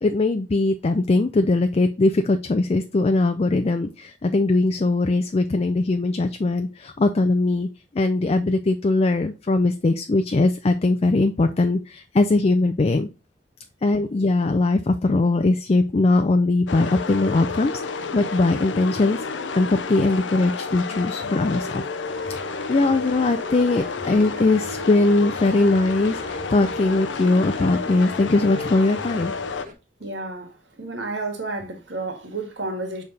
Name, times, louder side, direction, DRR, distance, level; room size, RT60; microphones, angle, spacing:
voice 1, 0.0-7.7 7.9-13.1 13.8-19.2 19.5-21.8 22.3-22.4 22.7-29.3, left 2 dB, 35° left, 0.4 m, -20 dB
sound 1, 16.7-29.7, left 4 dB, 90° left, 0.6 m, -30 dB
sound 2, 22.1-29.7, right 1 dB, 50° right, 1.3 m, -42 dB
voice 2, 30.0-30.5 30.8-33.0, right 2 dB, 80° right, 1.9 m, -31 dB
6.6 x 3.6 x 3.9 m
head